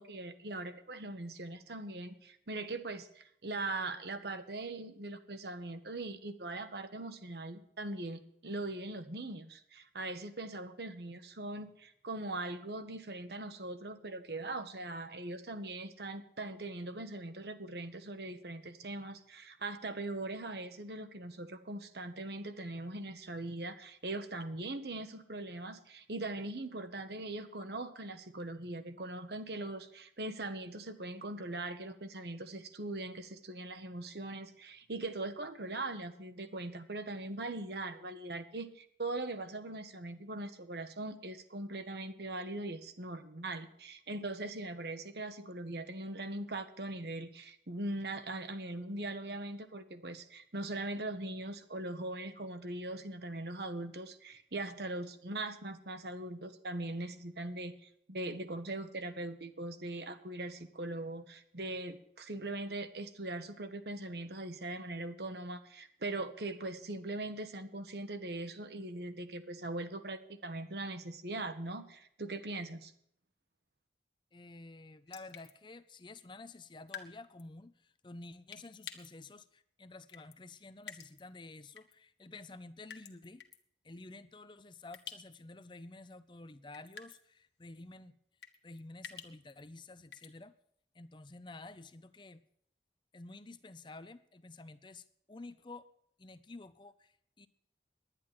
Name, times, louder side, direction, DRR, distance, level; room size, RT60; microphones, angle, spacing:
voice 1, 0.0-72.9, right 2 dB, 70° right, 9 dB, 1.2 m, -41 dB
voice 2, 74.3-83.4 83.8-88.2 88.6-90.5 90.9-92.4 93.1-95.9 96.2-97.5, left 2 dB, 25° left, 12 dB, 0.6 m, -51 dB
sound 1, 75.1-75.5 76.9-77.1 77.4-77.5 78.5-79.1 80.1-80.4 80.8-81.2 81.8-81.9 82.9-83.6 84.9-85.4 85.6-85.7 86.7-87.2 88.4-89.6 90.1-90.3, left 7 dB, 80° left, 1.5 m, -48 dB
10.5 x 10.0 x 8.9 m, 0.68 s
head